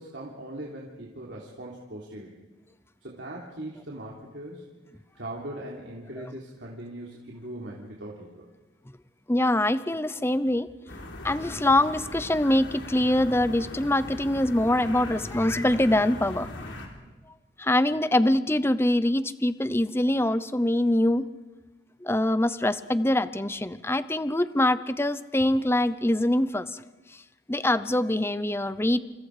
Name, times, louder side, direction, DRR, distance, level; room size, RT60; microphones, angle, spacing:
voice 1, 0.0-2.4 3.0-4.6 5.1-8.5, right 1 dB, 75° right, -3 dB, 3.5 m, -40 dB
voice 2, 9.3-10.7 11.2-16.5 17.6-21.3 22.0-26.8 27.5-29.0, left 1 dB, 15° left, 14 dB, 0.8 m, -24 dB
sound 1, 10.9-16.9, left 1 dB, 70° left, 3.9 m, -39 dB
29.0 x 28.5 x 5.0 m, 1.1 s
head